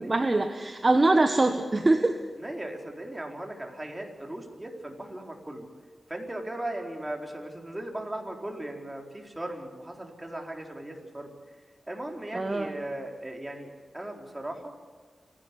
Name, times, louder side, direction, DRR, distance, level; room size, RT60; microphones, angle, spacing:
voice 1, 0.0-2.2 12.3-12.7, right 2 dB, 35° right, 6 dB, 1.3 m, -23 dB
voice 2, 2.4-5.7 6.1-11.3 11.9-14.7, right 1 dB, 20° right, 2 dB, 4.1 m, -37 dB
27.5 x 11.5 x 9.8 m, 1.5 s
cardioid pair, 60°, 0 cm